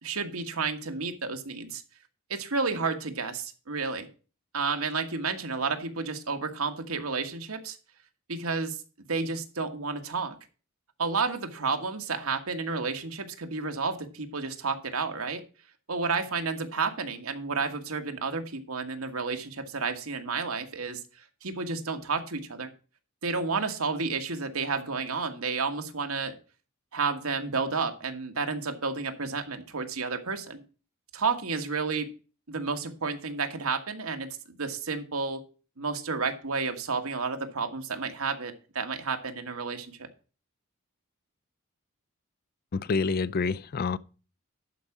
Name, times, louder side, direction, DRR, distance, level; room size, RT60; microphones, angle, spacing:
voice 1, 0.0-1.8 2.3-4.1 4.5-7.8 8.3-8.8 9.1-10.3 11.0-15.4 15.9-21.0 21.4-22.7 23.2-26.3 26.9-30.6 31.1-32.1 32.5-34.3 34.6-35.4 35.8-40.1, right 4 dB, 80° right, 1.5 m, -31 dB
voice 2, 42.7-44.0, left 4 dB, 45° left, 0.4 m, -27 dB
11.5 x 4.9 x 7.2 m
head